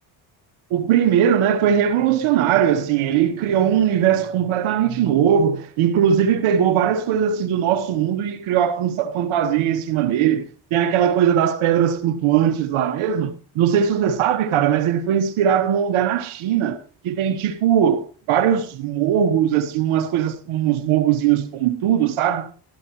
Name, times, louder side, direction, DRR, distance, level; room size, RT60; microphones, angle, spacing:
voice 1, 0.7-10.4 10.7-16.8 17.0-22.5, right 9 dB, 75° right, 1.2 m, -20 dB
13.5 x 12.5 x 3.0 m
supercardioid pair, 60°, 50 cm